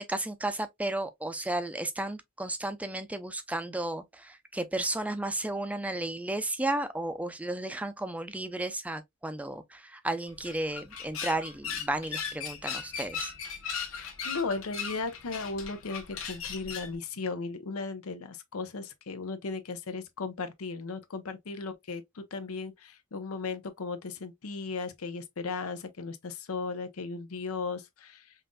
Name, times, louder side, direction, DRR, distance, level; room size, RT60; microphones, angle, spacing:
voice 1, 0.0-13.3, right 1 dB, 5° right, 0.4 m, -33 dB
sound 1, 10.3-16.9, left 6 dB, 70° left, 1.1 m, -38 dB
voice 2, 13.9-28.3, left 4 dB, 90° left, 0.7 m, -36 dB
5.5 x 2.5 x 2.2 m
head